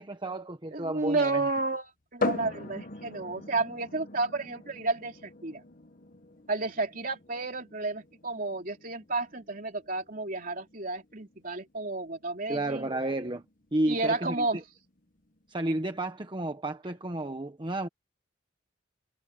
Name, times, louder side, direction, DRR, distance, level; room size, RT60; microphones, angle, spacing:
voice 1, 0.0-1.5 12.5-13.4 13.7-14.6 15.5-17.9, right 1 dB, 25° right, 1.1 m, -32 dB
voice 2, 0.7-1.9 2.1-5.6 6.5-12.9 13.8-14.6, right 3 dB, 50° right, 3.1 m, -31 dB
sound 1, 2.2-15.7, left 2 dB, 45° left, 1.4 m, -41 dB
head